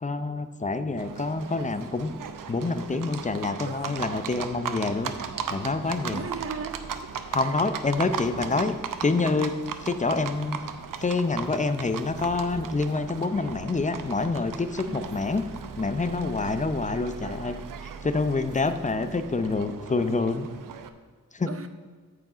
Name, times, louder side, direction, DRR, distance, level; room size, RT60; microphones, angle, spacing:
voice 1, 0.0-2.1 2.5-5.1 5.5-6.2 7.3-9.5 9.8-10.6 11.0-15.4 15.8-17.6 18.0-20.5 21.3-21.5, left 3 dB, 25° left, 10 dB, 0.6 m, -27 dB
Livestock farm animals working animals, 1.0-20.9, right 7 dB, 80° right, 0.7 m, -37 dB
voice 2, 6.1-6.8 7.3-7.7 14.9-15.2 18.9-19.2 19.5-19.8 21.5-21.7, right 5 dB, 45° right, 9 dB, 0.8 m, -38 dB
13.5 x 4.9 x 4.9 m, 1.5 s
wide cardioid pair, 100°, 32 cm